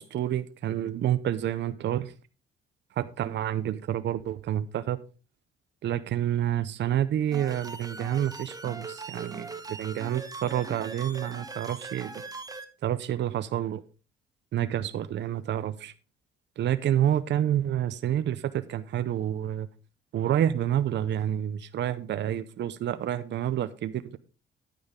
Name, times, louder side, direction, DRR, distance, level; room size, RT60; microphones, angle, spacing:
voice 1, 0.0-2.1 3.0-5.0 5.8-12.1 12.8-13.8 14.5-15.9 16.6-19.7 20.1-24.2, right 11 dB, 65° right, 0.7 m, -28 dB
sound 1, 7.3-12.7, right 3 dB, 20° right, 1.5 m, -40 dB
10.0 x 8.7 x 3.7 m
cardioid pair, 90°, 20 cm